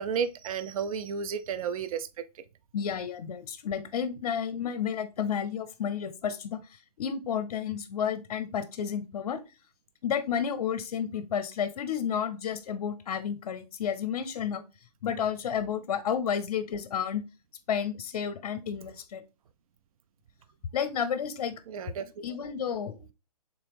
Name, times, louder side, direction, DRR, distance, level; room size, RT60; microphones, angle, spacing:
voice 1, 0.0-2.1 21.7-22.1, right 6 dB, 60° right, 0.4 m, -32 dB
voice 2, 2.7-6.6 7.0-9.4 10.0-14.6 15.0-17.2 17.7-19.2 20.7-21.5 22.2-23.0, left 8 dB, 65° left, 0.6 m, -31 dB
3.5 x 2.8 x 3.3 m
hypercardioid pair, 150°, 21 cm